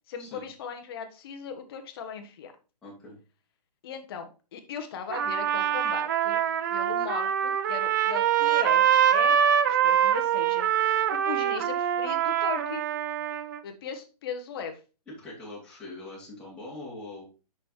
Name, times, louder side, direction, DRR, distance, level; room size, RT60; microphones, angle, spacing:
voice 1, 0.1-2.5 3.8-6.4 6.7-9.4 9.6-10.7 11.1-12.8 13.6-14.8, left 7 dB, 35° left, 7 dB, 1.1 m, -38 dB
voice 2, 2.8-3.2 15.1-17.2, left 2 dB, 5° left, -7 dB, 2.3 m, -42 dB
Trumpet, 5.1-13.6, right 9 dB, 30° right, 0.4 m, -24 dB
6.8 x 6.0 x 3.1 m, 0.32 s
hypercardioid pair, 155°, 20 cm